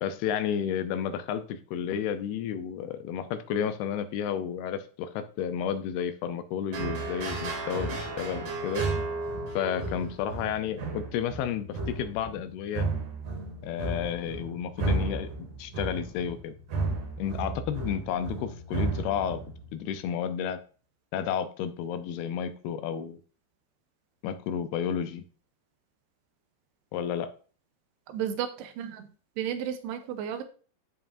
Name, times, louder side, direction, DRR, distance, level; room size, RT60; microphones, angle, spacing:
voice 1, 0.0-8.9 9.5-12.9 13.6-16.5 17.2-19.4 19.7-20.6 21.1-23.2 24.2-25.2 26.9-27.3, left 8 dB, 80° left, 10 dB, 2.5 m, -31 dB
sound 1, 6.7-19.9, right 3 dB, 60° right, 2.8 m, -33 dB
voice 2, 28.1-29.1 29.4-30.4, right 9 dB, 85° right, 9 dB, 2.8 m, -33 dB
13.0 x 4.8 x 2.5 m, 0.40 s
omnidirectional pair, 4.7 m